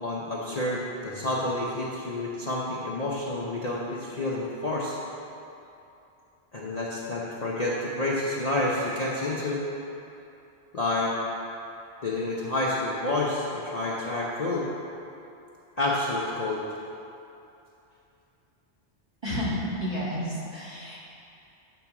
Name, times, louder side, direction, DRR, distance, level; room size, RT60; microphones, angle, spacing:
voice 1, 0.0-4.9 6.5-9.6 10.7-11.1 12.0-14.7 15.8-16.6, left 2 dB, 40° left, -6 dB, 0.7 m, -29 dB
voice 2, 19.2-21.0, equal, 25° right, -8 dB, 1.6 m, -31 dB
8.4 x 3.9 x 5.9 m, 2.7 s
omnidirectional pair, 1.2 m